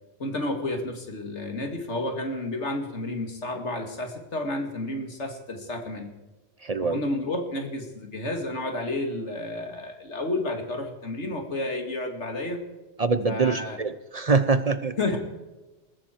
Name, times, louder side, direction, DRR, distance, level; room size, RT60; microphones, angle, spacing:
voice 1, 0.2-6.1 6.9-12.6 13.3-13.8 15.0-15.2, left 2 dB, 85° left, 4 dB, 2.6 m, -31 dB
voice 2, 6.6-7.0 13.0-14.9, right 4 dB, 40° right, 12 dB, 0.7 m, -24 dB
20.0 x 15.0 x 4.6 m, 1.1 s
omnidirectional pair, 1.2 m